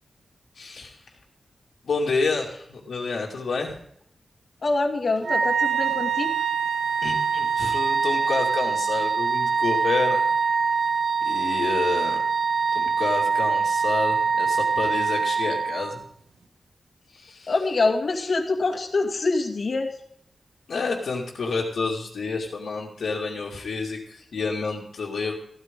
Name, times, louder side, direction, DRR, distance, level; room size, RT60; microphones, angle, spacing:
voice 1, 0.5-1.0 1.8-3.8 7.0-10.2 11.2-12.2 12.7-16.0 17.1-17.5 20.7-25.3, left 4 dB, 75° left, -5 dB, 2.5 m, -29 dB
voice 2, 4.6-6.3 17.5-19.9, left 3 dB, 50° left, 4 dB, 2.2 m, -25 dB
Wind instrument woodwind instrument, 5.2-16.0, right 5 dB, 65° right, 1.1 m, -24 dB
15.0 x 13.0 x 3.8 m, 0.69 s
wide cardioid pair, 155°, 0 cm